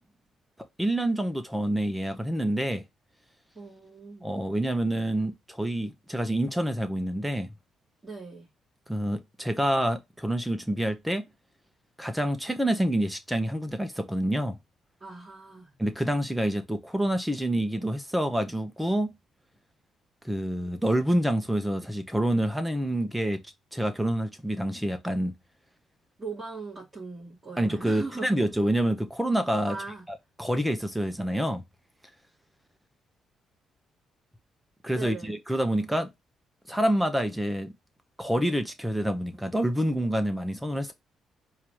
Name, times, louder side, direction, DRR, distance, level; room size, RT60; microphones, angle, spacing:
voice 1, 0.8-2.8 4.2-7.5 8.9-11.2 12.0-14.6 15.8-19.1 20.2-23.4 23.7-25.3 27.6-29.8 30.1-31.6 34.8-36.1 36.7-37.7 38.2-40.9, right 1 dB, 5° right, 1.1 m, -27 dB
voice 2, 3.5-4.3 8.0-8.5 15.0-15.7 26.2-28.3 29.7-30.0 34.9-35.3, right 3 dB, 20° right, 2.7 m, -40 dB
4.7 x 3.1 x 3.6 m
cardioid pair, 90°, 0 cm